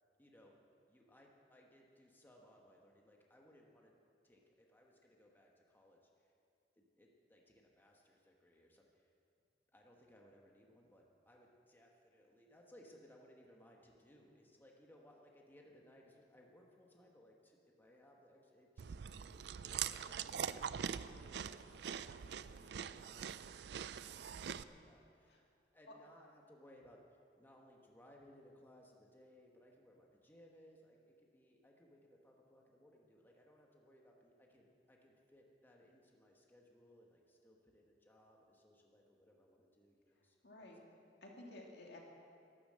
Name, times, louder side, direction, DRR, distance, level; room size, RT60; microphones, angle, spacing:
voice 1, 0.2-4.0 4.2-6.3 6.7-9.1 9.7-19.0 19.3-25.4 25.7-40.7, equal, 10° left, -1 dB, 1.3 m, -64 dB
Chewing mastication, 18.8-24.6, right 8 dB, 70° right, 0.4 m, -43 dB
voice 2, 24.3-24.7 25.3-25.4 25.9-26.0 40.4-40.8 41.2-42.0, left 1 dB, 70° left, 0 dB, 2.3 m, -54 dB
12.0 x 11.5 x 7.5 m, 2.4 s
head